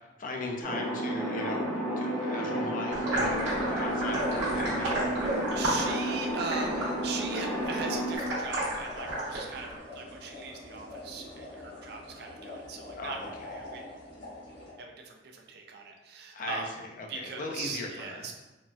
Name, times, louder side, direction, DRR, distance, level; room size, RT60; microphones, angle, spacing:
voice 1, 0.2-1.7 1.9-5.2 12.9-13.3 16.3-16.7 17.0-18.3, left 2 dB, 45° left, 1 dB, 0.4 m, -38 dB
sound 1, 0.6-8.2, right 1 dB, ahead, 0.8 m, -32 dB
sound 2, 2.9-9.8, right 1 dB, 85° right, 1.1 m, -33 dB
sound 3, 3.1-14.7, left 2 dB, 90° left, 1.4 m, -45 dB
voice 2, 5.5-13.8 14.8-16.7 17.1-18.3, right 4 dB, 60° right, 2 dB, 0.4 m, -40 dB
3.9 x 2.1 x 2.3 m, 1.1 s
head